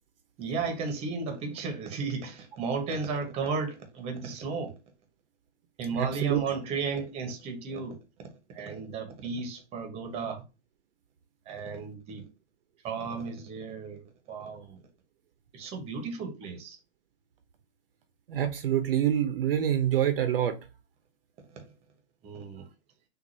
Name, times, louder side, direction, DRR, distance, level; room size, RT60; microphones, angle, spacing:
voice 1, 0.4-4.7 5.8-8.0 8.5-10.4 11.5-12.3 12.8-14.8 15.5-16.8 21.5-21.7 22.2-22.7, right 4 dB, 20° right, 1.0 m, -34 dB
voice 2, 6.0-6.4 18.3-20.6, right 10 dB, 55° right, 0.7 m, -26 dB
6.1 x 2.6 x 2.6 m
hypercardioid pair, 140°, 33 cm